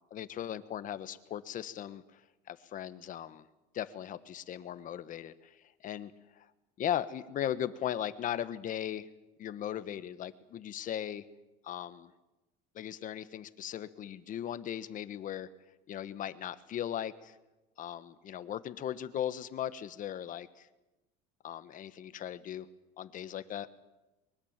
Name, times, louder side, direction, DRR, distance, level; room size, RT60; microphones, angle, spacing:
voice 1, 0.0-2.2 2.5-3.4 3.7-6.5 6.8-9.1 9.4-11.2 11.6-12.1 12.7-15.5 15.9-17.3 17.8-20.7 21.4-22.7 23.0-23.7, left 10 dB, 40° left, 13 dB, 1.3 m, -38 dB
23.0 x 23.0 x 7.5 m, 1.0 s
cardioid pair, 135°, 20 cm